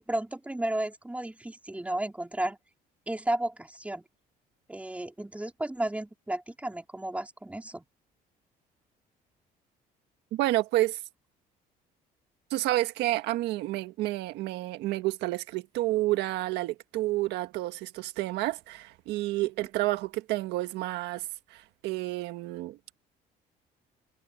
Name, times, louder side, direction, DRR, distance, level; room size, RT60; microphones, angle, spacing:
voice 1, 0.0-2.6 3.1-4.1 4.7-7.8, right 1 dB, 10° right, 4.2 m, -33 dB
voice 2, 10.3-11.0 12.5-23.0, right 17 dB, 90° right, 1.5 m, -30 dB
cardioid pair, 110°, 17 cm